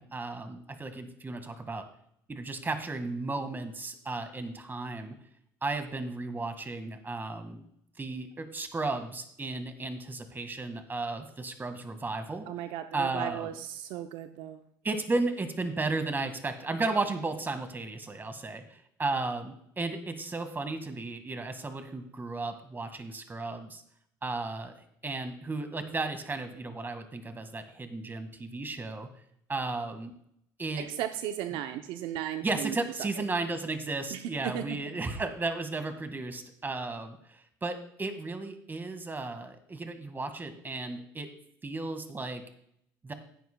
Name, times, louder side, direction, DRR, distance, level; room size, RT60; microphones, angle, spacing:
voice 1, 0.0-1.8 2.3-5.2 5.6-7.6 8.0-12.5 12.9-13.5 14.8-23.8 24.2-24.7 25.0-29.1 29.5-30.1 30.6-30.9 32.4-41.3 41.6-42.4 43.0-43.1, right 3 dB, 25° right, 8 dB, 1.8 m, -34 dB
voice 2, 12.5-14.6 30.8-33.1 34.1-34.8, right 11 dB, 75° right, 8 dB, 0.7 m, -36 dB
16.0 x 9.4 x 2.3 m, 0.70 s
supercardioid pair, 75°, 9 cm